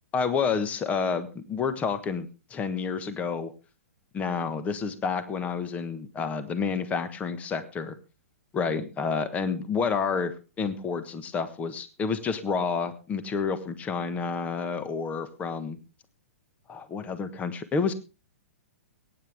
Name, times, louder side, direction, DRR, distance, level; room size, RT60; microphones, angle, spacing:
voice 1, 0.1-3.5 4.1-7.9 8.5-15.8 16.7-17.9, left 5 dB, 20° left, 12 dB, 1.3 m, -29 dB
22.5 x 9.8 x 3.5 m, 0.31 s
hypercardioid pair, 120°, 7 cm